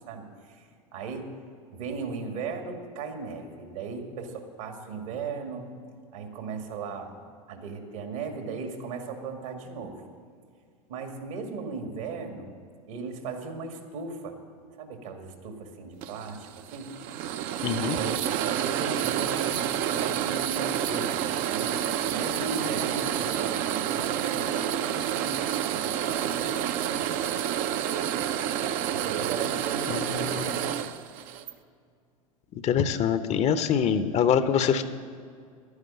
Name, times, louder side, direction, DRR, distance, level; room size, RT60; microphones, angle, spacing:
voice 1, 0.1-1.3 1.7-5.8 6.1-7.2 7.5-10.0 10.9-12.5 12.9-14.4 14.8-17.0 18.0-21.8 22.1-27.0 28.9-30.7, right 4 dB, 70° right, 5 dB, 2.2 m, -37 dB
sound 1, 16.0-31.5, right 10 dB, 50° right, 0.7 m, -29 dB
voice 2, 17.6-18.0 29.9-30.6 32.6-34.8, left 8 dB, 35° left, 11 dB, 0.8 m, -25 dB
11.5 x 9.7 x 8.8 m, 2.2 s
hypercardioid pair, 90°, 18 cm